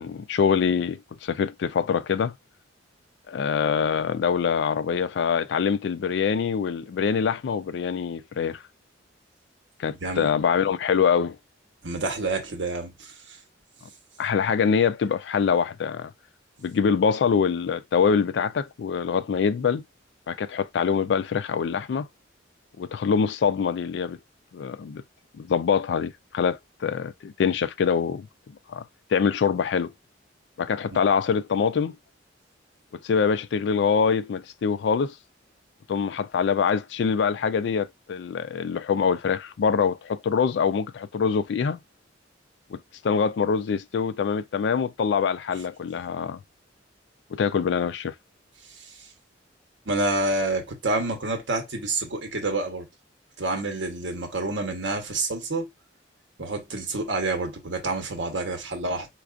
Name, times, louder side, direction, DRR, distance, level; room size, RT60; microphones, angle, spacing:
voice 1, 0.0-2.3 3.3-8.6 9.8-11.4 14.2-16.1 16.6-19.8 20.3-22.1 22.8-24.2 24.5-25.0 25.4-28.3 28.7-28.8 29.1-29.9 30.6-32.0 32.9-35.2 35.9-41.8 42.7-42.8 43.0-46.4 47.3-48.1, left 6 dB, 65° left, 0.3 m, -24 dB
voice 2, 11.8-13.1 30.9-31.0 49.9-52.9 53.4-55.7 56.4-59.1, right 2 dB, 75° right, 1.0 m, -28 dB
4.6 x 2.4 x 2.4 m
head